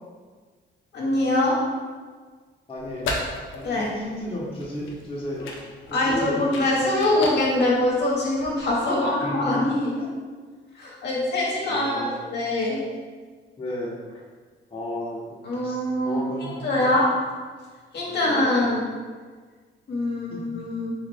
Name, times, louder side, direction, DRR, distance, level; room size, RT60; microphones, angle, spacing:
voice 1, 0.9-1.6 3.6-3.9 5.9-10.0 10.7-12.0 12.3-12.8 15.4-17.1 17.9-18.8 19.9-20.9, left 1 dB, 60° left, -5 dB, 1.2 m, -23 dB
voice 2, 2.7-3.2 3.5-5.6 5.9-6.6 8.9-9.6 11.7-12.1 13.6-14.2 14.7-16.9 18.2-18.5 20.3-20.5, left 1 dB, 25° left, -5 dB, 1.1 m, -33 dB
sound 1, 2.8-8.8, left 2 dB, 90° left, 0.7 m, -36 dB
3.9 x 3.2 x 3.5 m, 1.5 s
cardioid pair, 90°, 20 cm